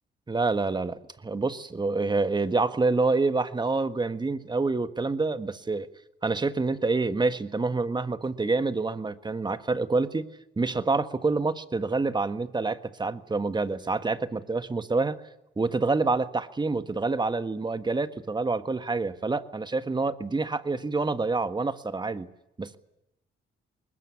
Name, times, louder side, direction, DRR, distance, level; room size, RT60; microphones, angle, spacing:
voice 1, 0.3-5.9 6.2-10.3 10.6-15.2 15.6-22.3 22.6-22.8, right 3 dB, 20° right, 12 dB, 1.5 m, -27 dB
21.0 x 20.0 x 9.7 m, 0.87 s
cardioid pair, 90°, 20 cm